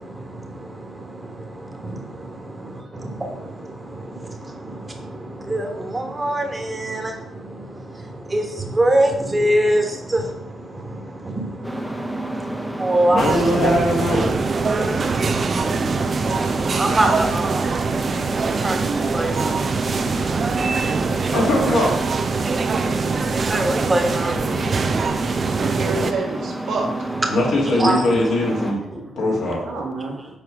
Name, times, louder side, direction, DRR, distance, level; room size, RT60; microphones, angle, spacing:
voice 1, 0.0-13.2 14.7-21.3 22.3-26.1 27.1-28.2 28.6-29.6 30.0-30.4, right 1 dB, 25° right, 3 dB, 1.5 m, -26 dB
sound 1, 11.6-28.7, right 1 dB, 5° right, 0.9 m, -29 dB
voice 2, 13.1-14.4 21.3-22.0 27.3-28.8 29.2-29.7, left 1 dB, 70° left, -3 dB, 2.2 m, -20 dB
sound 2, 13.2-26.1, right 5 dB, 50° right, 0.6 m, -23 dB
voice 3, 25.6-26.9 29.7-30.4, right 3 dB, 75° right, -3 dB, 1.7 m, -28 dB
7.0 x 4.4 x 3.6 m, 0.85 s
supercardioid pair, 60°, 0 cm